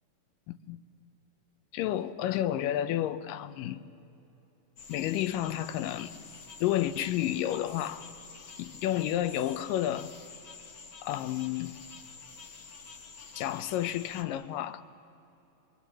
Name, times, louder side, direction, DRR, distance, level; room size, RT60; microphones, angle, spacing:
voice 1, 0.5-0.8 1.7-3.8 4.9-6.1 6.6-8.0 8.6-10.1 11.0-11.8 13.4-14.8, left 12 dB, 80° left, 11 dB, 2.4 m, -31 dB
sound 1, 4.8-14.2, left 5 dB, 50° left, 1.7 m, -48 dB
26.5 x 24.0 x 7.5 m, 2.9 s
omnidirectional pair, 3.9 m